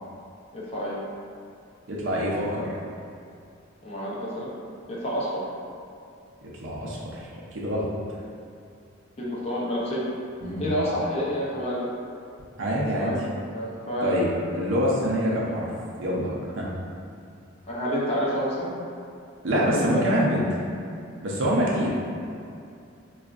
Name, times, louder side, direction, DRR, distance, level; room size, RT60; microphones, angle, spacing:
voice 1, 0.5-1.0 2.5-2.6 3.8-4.5 4.9-5.5 9.2-10.1 10.6-11.9 12.9-13.2 13.5-14.1 17.7-18.7 19.7-20.0 21.6-21.9, equal, 30° left, -7 dB, 0.6 m, -29 dB
voice 2, 1.9-2.7 6.6-7.0 7.5-7.9 10.4-10.7 12.6-13.1 14.0-15.7 16.0-16.7 19.4-20.4 21.2-21.9, equal, 60° right, -5 dB, 0.6 m, -25 dB
4.1 x 2.4 x 2.4 m, 2.5 s
head